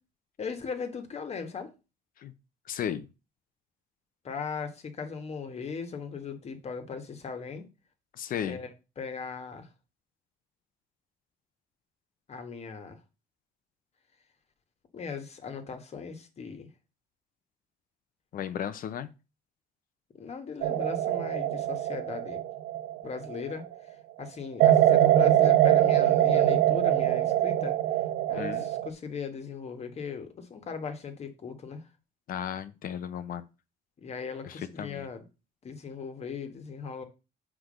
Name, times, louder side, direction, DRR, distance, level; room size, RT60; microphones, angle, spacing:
voice 1, 0.4-1.7 4.2-7.7 8.4-9.7 12.3-13.0 14.9-16.7 20.1-22.4 23.0-23.6 24.2-27.7 28.3-31.8 34.0-35.2 35.6-37.0, left 5 dB, 40° left, 1.6 m, -38 dB
voice 2, 2.7-3.1 8.1-8.6 18.3-19.1 28.4-28.7 32.3-33.5 34.4-35.1, left 9 dB, 55° left, 0.8 m, -35 dB
sound 1, 20.6-23.6 24.6-28.9, right 12 dB, 80° right, 0.7 m, -23 dB
6.0 x 4.7 x 6.5 m
cardioid pair, 110°, 17 cm